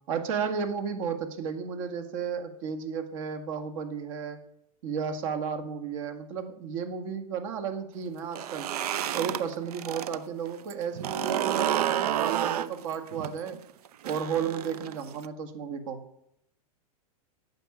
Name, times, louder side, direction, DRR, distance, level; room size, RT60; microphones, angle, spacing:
voice 1, 0.1-4.4 4.8-8.7 9.1-13.6 14.0-16.0, right 6 dB, 60° right, 8 dB, 1.9 m, -33 dB
sound 1, 8.2-10.2 10.5-15.3, right 10 dB, 85° right, 0.7 m, -30 dB
9.0 x 7.3 x 8.4 m, 0.76 s
supercardioid pair, 140°, 19 cm